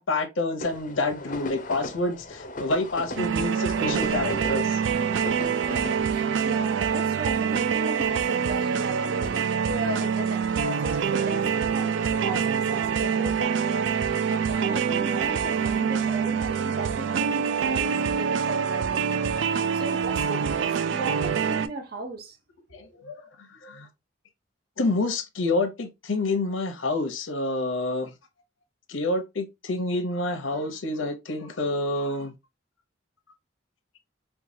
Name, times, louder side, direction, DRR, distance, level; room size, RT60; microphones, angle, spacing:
voice 1, 0.0-4.8 22.7-23.9 24.8-28.1 28.9-32.3, left 2 dB, 85° left, 0.8 m, -28 dB
sound 1, 0.6-6.1, left 2 dB, 40° left, 0.5 m, -37 dB
sound 2, 3.2-21.7, right 7 dB, 70° right, 0.3 m, -25 dB
voice 2, 5.7-22.4, right 2 dB, 50° right, 0.7 m, -36 dB
4.5 x 2.3 x 2.6 m
head